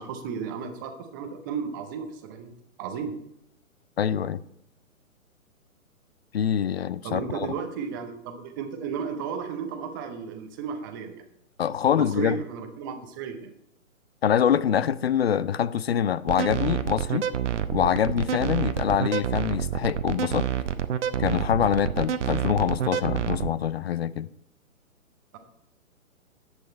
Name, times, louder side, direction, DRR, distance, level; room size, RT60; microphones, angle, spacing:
voice 1, 0.0-2.5 2.8-3.1 7.0-11.3 11.8-13.5 25.3-25.4, right 6 dB, 15° right, 0.6 m, -34 dB
voice 2, 4.0-4.4 6.3-7.2 11.6-12.4 14.2-17.3 17.7-20.5 21.2-24.3, left 9 dB, 50° left, 0.4 m, -25 dB
sound 1, 16.3-23.5, right 9 dB, 55° right, 0.8 m, -27 dB
10.0 x 8.1 x 4.2 m
figure-of-eight pair, 130°, 43 cm